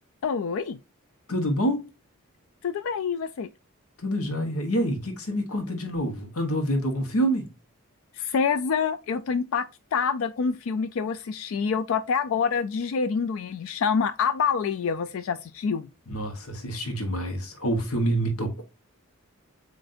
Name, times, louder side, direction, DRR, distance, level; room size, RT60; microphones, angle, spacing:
voice 1, 0.2-0.8 2.6-3.5 8.1-15.9, left 6 dB, 65° left, 0.3 m, -26 dB
voice 2, 1.3-1.9 4.0-7.5 16.1-18.6, right 1 dB, 85° left, 1.1 m, -27 dB
7.6 x 2.6 x 2.5 m
head